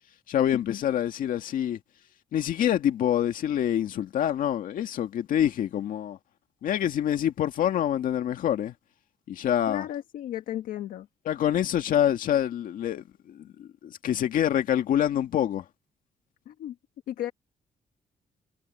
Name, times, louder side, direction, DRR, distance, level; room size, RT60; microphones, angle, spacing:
voice 1, 0.3-1.8 2.3-6.2 6.6-8.7 9.3-9.9 11.3-15.6, left 10 dB, 75° left, 2.1 m, -26 dB
voice 2, 9.7-11.1 16.4-16.7 17.1-17.3, left 12 dB, 90° left, 1.6 m, -34 dB
cardioid pair, 110°, 14 cm